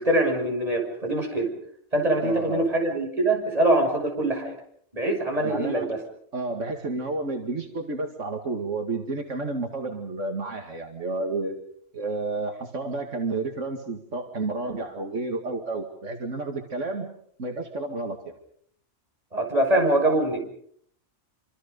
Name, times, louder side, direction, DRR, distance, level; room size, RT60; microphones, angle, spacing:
voice 1, 0.0-1.5 1.9-4.5 4.9-6.0 19.3-20.4, right 1 dB, 30° right, 1 dB, 6.7 m, -23 dB
voice 2, 2.2-2.7 5.4-5.9 6.3-11.6 11.9-17.1 17.4-18.3, right 3 dB, 80° right, 3 dB, 2.5 m, -31 dB
27.0 x 26.0 x 5.4 m, 0.64 s
omnidirectional pair, 1.3 m